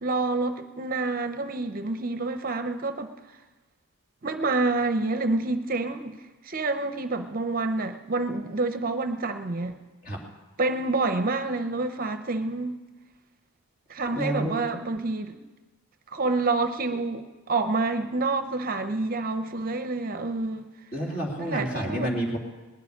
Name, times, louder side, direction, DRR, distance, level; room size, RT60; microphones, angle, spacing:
voice 1, 0.0-3.1 4.2-6.2 6.4-9.8 10.6-12.8 13.9-15.4 16.1-20.7 21.4-22.1, right 3 dB, 40° right, 8 dB, 0.7 m, -28 dB
voice 2, 14.1-14.7 20.9-22.4, right 1 dB, 40° left, -1 dB, 3.0 m, -29 dB
19.5 x 6.9 x 9.8 m, 1.2 s
head